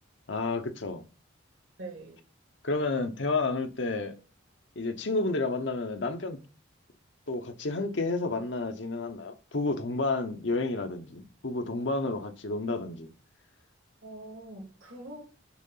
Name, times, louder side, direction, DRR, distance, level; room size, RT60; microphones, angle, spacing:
voice 1, 0.3-1.0 2.6-4.2 4.8-6.4 7.3-13.1, left 3 dB, 65° left, 0.9 m, -30 dB
voice 2, 1.8-2.2 14.0-15.2, right 2 dB, 85° right, 2.3 m, -43 dB
6.2 x 3.7 x 5.6 m
head